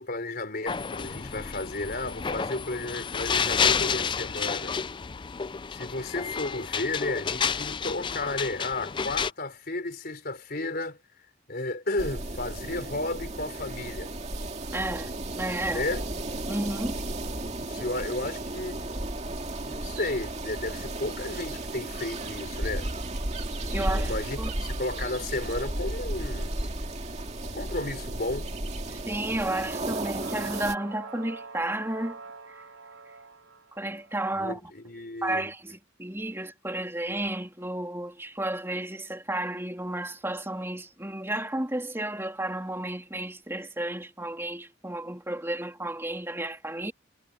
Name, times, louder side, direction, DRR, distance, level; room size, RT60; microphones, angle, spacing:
voice 1, 0.0-4.8 5.7-11.0 11.5-14.1 15.7-16.0 17.5-18.8 19.6-22.9 23.7-26.6 27.4-28.5 34.3-35.4, left 2 dB, 45° left, 4.2 m, -33 dB
sound 1, 0.7-9.3, left 6 dB, 25° left, 0.4 m, -30 dB
sound 2, 12.0-30.7, right 1 dB, 35° right, 2.2 m, -34 dB
voice 2, 14.7-15.8 16.5-17.0 23.7-24.5 29.1-32.2 32.5-32.6 33.7-34.7 35.2-46.9, right 1 dB, 10° right, 3.2 m, -32 dB
sound 3, 30.2-34.3, right 4 dB, 80° right, 4.9 m, -45 dB
head